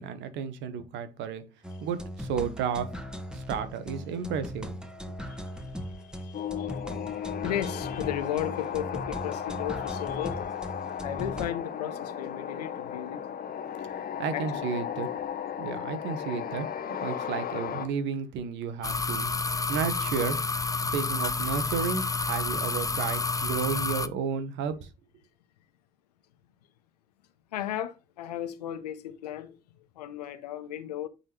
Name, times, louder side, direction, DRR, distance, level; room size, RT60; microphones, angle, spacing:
voice 1, 0.0-1.5 1.8-2.9 3.3-4.8 13.8-15.1 15.6-16.7 17.0-19.3 19.7-20.4 20.8-24.9, right 6 dB, 70° right, 1.1 m, -32 dB
sound 1, 1.6-11.5, equal, 5° right, 1.6 m, -39 dB
voice 2, 5.3-6.7 7.4-10.5 11.0-13.2 14.3-14.7 27.5-29.6 30.0-31.1, left 11 dB, 90° left, 0.6 m, -35 dB
sound 2, 6.3-17.9, left 8 dB, 50° left, 1.0 m, -35 dB
sound 3, 18.8-24.1, left 4 dB, 15° left, 0.6 m, -29 dB
8.8 x 4.1 x 3.1 m
hypercardioid pair, 45°, 20 cm